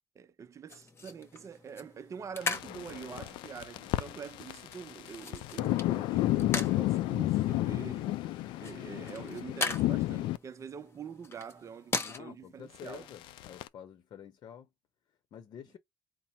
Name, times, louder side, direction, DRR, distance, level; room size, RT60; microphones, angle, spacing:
voice 1, 0.2-8.2 8.6-13.1, right 7 dB, 40° right, 0.5 m, -45 dB
sound 1, 0.7-12.2, left 4 dB, 30° left, 1.0 m, -41 dB
sound 2, 2.4-10.4 12.8-13.7, left 16 dB, 75° left, 0.3 m, -32 dB
voice 2, 12.0-14.7 15.3-15.8, left 8 dB, 55° left, 0.7 m, -48 dB
4.0 x 2.0 x 4.3 m
supercardioid pair, 80°, 8 cm